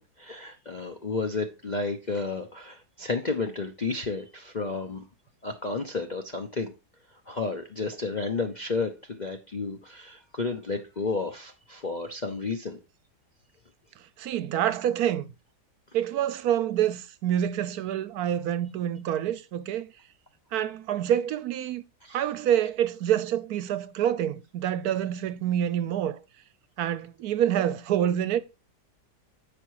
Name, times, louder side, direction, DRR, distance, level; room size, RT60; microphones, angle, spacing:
voice 1, 0.0-5.0 5.4-6.7 7.3-12.8 22.0-22.3 22.6-22.7, left 3 dB, 40° left, 0.7 m, -32 dB
voice 2, 14.2-15.3 15.9-19.9 20.5-21.8 22.1-26.2 26.8-28.4, right 10 dB, 70° right, 1.1 m, -27 dB
8.7 x 5.2 x 4.7 m
omnidirectional pair, 1.8 m